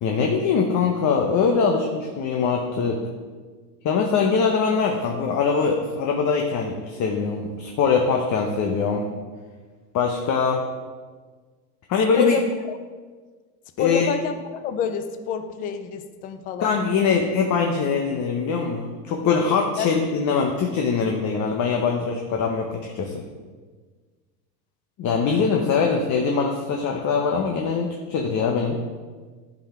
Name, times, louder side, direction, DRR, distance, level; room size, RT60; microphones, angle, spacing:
voice 1, 0.0-3.0 3.8-9.1 9.9-10.6 11.9-12.4 13.8-14.1 16.6-23.2 25.0-28.8, left 5 dB, 35° left, 2 dB, 0.9 m, -22 dB
voice 2, 13.8-16.7 19.8-19.9, left 7 dB, 20° left, 9 dB, 0.3 m, -28 dB
11.5 x 5.0 x 4.4 m, 1.5 s
supercardioid pair, 115°, 48 cm